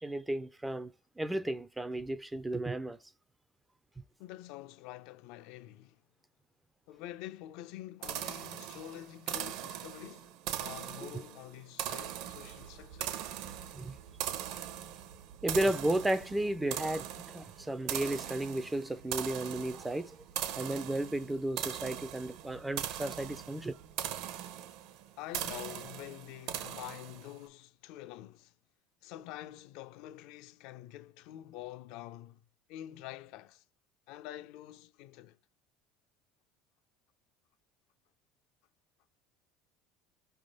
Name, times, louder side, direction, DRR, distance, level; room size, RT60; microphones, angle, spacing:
voice 1, 0.0-0.9 1.2-3.0 13.7-14.0 15.4-20.2 20.6-23.7, right 1 dB, 5° right, 0.3 m, -33 dB
voice 2, 4.2-6.0 6.9-13.2 25.2-28.5 29.0-32.4 32.7-33.6 34.1-35.4, left 14 dB, 65° left, 0.4 m, -47 dB
sound 1, 8.0-27.4, right 11 dB, 65° right, 0.7 m, -40 dB
sound 2, 12.0-24.1, right 6 dB, 85° right, 1.1 m, -56 dB
5.7 x 3.4 x 5.2 m
cardioid pair, 160°, 0 cm